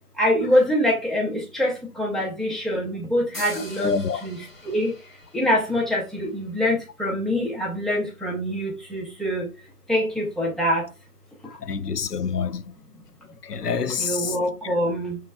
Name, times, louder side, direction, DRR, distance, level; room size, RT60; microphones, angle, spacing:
voice 1, 0.2-3.9 4.2-4.4 4.6-4.9 5.3-9.5 9.9-10.8 14.0-15.2, equal, ahead, 0.6 m, -24 dB
sound 1, 3.3-6.9, left 1 dB, 55° left, 2.2 m, -43 dB
voice 2, 3.8-4.3 11.5-12.6 13.4-14.4 14.6-14.7, left 5 dB, 85° left, 0.5 m, -27 dB
5.6 x 3.0 x 2.2 m
figure-of-eight pair, 165°, 46 cm